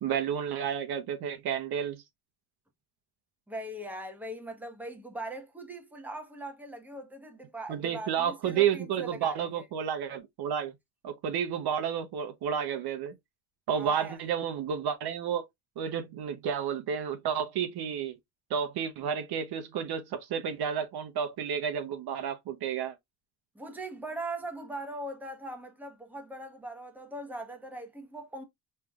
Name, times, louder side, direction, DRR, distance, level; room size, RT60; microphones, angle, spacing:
voice 1, 0.0-2.0 7.7-10.7 11.0-13.1 13.7-15.5 15.8-18.1 18.5-22.9, right 8 dB, 60° right, 0.8 m, -31 dB
voice 2, 3.5-9.7 13.7-14.2 23.5-28.4, right 1 dB, 5° right, 1.0 m, -40 dB
4.8 x 3.3 x 2.3 m
cardioid pair, 115°, 43 cm